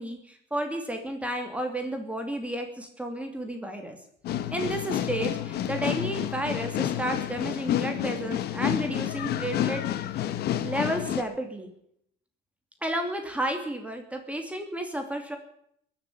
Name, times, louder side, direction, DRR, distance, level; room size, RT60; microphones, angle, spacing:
voice 1, 0.0-4.0 4.5-10.2 10.6-11.7 12.8-15.4, right 1 dB, 10° right, 4 dB, 2.6 m, -32 dB
sound 1, 4.2-11.2, left 11 dB, 70° left, 1.2 m, -29 dB
21.5 x 7.6 x 7.4 m, 0.70 s
cardioid pair, 110°, 17 cm